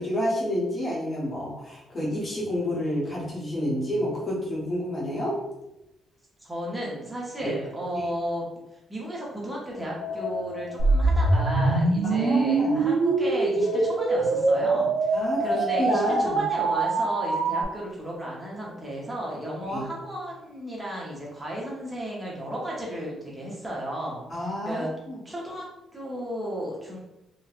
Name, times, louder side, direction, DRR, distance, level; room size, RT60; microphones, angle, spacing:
voice 1, 0.0-5.4 7.4-7.5 7.9-8.0 12.0-12.8 15.1-16.4 19.7-19.9 24.3-25.2, equal, 30° left, -6 dB, 0.8 m, -29 dB
voice 2, 6.4-8.5 8.9-24.3 24.6-24.9 25.2-27.0, equal, 10° right, -4 dB, 0.7 m, -34 dB
sound 1, 9.7-16.8, left 6 dB, 80° left, 0.4 m, -37 dB
sound 2, 10.8-17.6, right 3 dB, 65° right, 0.3 m, -23 dB
3.1 x 2.1 x 2.4 m, 0.90 s
cardioid pair, 160°, 0 cm